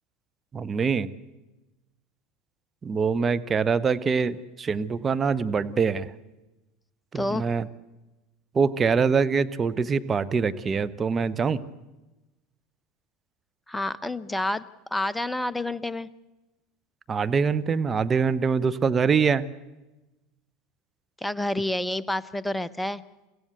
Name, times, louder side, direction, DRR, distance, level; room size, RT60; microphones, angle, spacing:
voice 1, 0.5-1.1 2.8-6.1 7.1-7.7 8.5-11.6 17.1-19.4, right 5 dB, 25° right, 14 dB, 1.1 m, -24 dB
voice 2, 7.1-7.5 13.7-14.6 14.9-16.1 21.2-23.0, left 1 dB, 5° left, 17 dB, 0.9 m, -28 dB
29.0 x 16.0 x 8.2 m, 1.1 s
hypercardioid pair, 80°, 0 cm